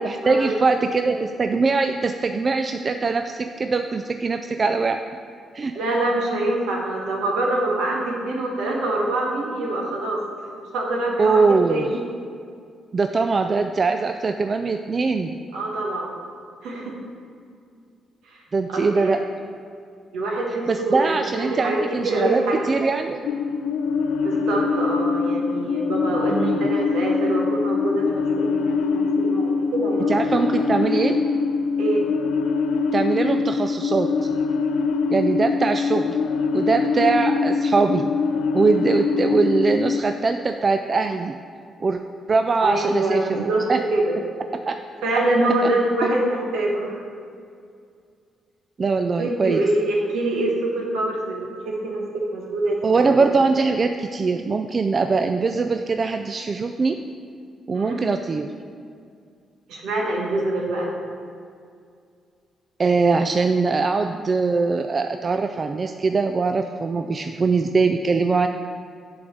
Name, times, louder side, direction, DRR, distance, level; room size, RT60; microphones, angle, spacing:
voice 1, 0.0-5.0 5.5-5.7 11.2-12.0 12.9-15.4 18.5-19.2 20.7-23.2 26.3-26.6 30.1-31.2 32.9-34.3 35.1-36.2 36.5-38.1 38.5-41.4 41.8-42.0 42.3-43.8 44.7-44.8 45.1-45.2 45.6-45.7 46.0-46.1 48.8-49.6 52.8-57.0 57.7-58.5 62.8-68.5, right 4 dB, 40° right, 6 dB, 0.3 m, -22 dB
voice 2, 5.7-10.2 10.6-12.0 15.5-16.1 16.6-16.9 18.3-18.4 18.7-19.2 20.1-22.7 24.2-30.2 31.8-32.0 42.6-44.1 45.0-47.0 49.2-53.1 57.7-58.0 59.7-60.9, right 2 dB, 90° right, -2 dB, 1.3 m, -25 dB
sound 1, 23.2-40.0, left 4 dB, 85° left, 0.4 m, -23 dB
7.5 x 4.0 x 6.3 m, 2.3 s
cardioid pair, 70°, 0 cm